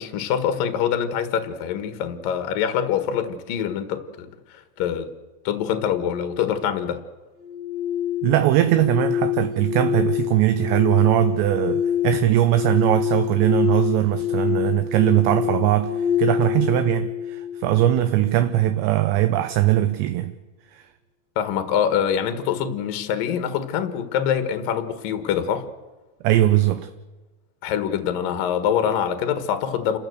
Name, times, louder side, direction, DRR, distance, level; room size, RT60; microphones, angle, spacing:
voice 1, 0.0-5.1 5.4-7.0 21.4-25.7 27.6-30.0, left 8 dB, 60° left, 2.5 m, -25 dB
sound 1, 7.4-18.4, left 9 dB, 45° right, 3.0 m, -26 dB
voice 2, 8.2-20.3 20.7-20.8 26.2-26.9, right 13 dB, 80° right, 2.8 m, -20 dB
29.5 x 14.0 x 7.9 m
omnidirectional pair, 5.8 m